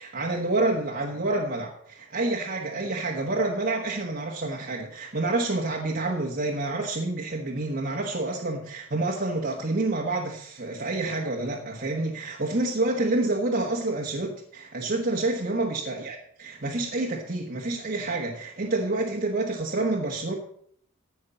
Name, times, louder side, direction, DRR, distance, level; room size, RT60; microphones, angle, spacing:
voice 1, 0.0-20.3, right 2 dB, 45° right, -1 dB, 1.4 m, -28 dB
14.5 x 5.8 x 7.0 m, 0.63 s
head